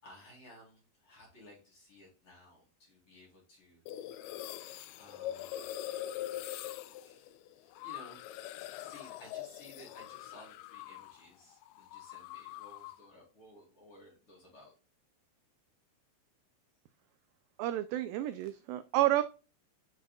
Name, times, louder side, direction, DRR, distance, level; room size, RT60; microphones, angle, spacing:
voice 1, 0.0-4.1 5.0-5.7 7.0-14.7, left 1 dB, 35° left, -3 dB, 4.1 m, -57 dB
sound 1, 3.9-11.3 11.5-13.1, left 13 dB, 85° left, 2.4 m, -43 dB
voice 2, 17.6-19.2, right 14 dB, 85° right, 12 dB, 2.1 m, -30 dB
9.1 x 5.8 x 2.3 m, 0.32 s
omnidirectional pair, 4.5 m